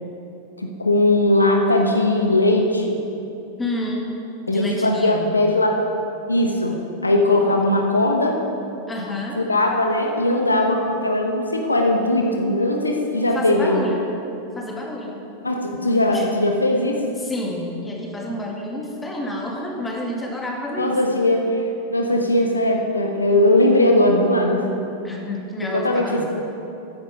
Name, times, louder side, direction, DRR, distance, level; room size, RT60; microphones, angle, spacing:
voice 1, 0.6-3.0 4.5-5.8 6.3-6.8 7.0-8.4 9.4-13.9 15.4-17.0 20.8-21.6 21.9-24.7 25.7-26.2, left 1 dB, 80° left, 2 dB, 1.1 m, -19 dB
voice 2, 3.6-4.0 4.5-5.4 8.9-9.4 13.3-14.1 14.5-15.2 16.0-16.3 17.2-21.0 25.0-26.2, left 1 dB, 10° left, -1 dB, 2.1 m, -29 dB
13.5 x 10.0 x 5.0 m, 2.8 s
figure-of-eight pair, 90°, 0 cm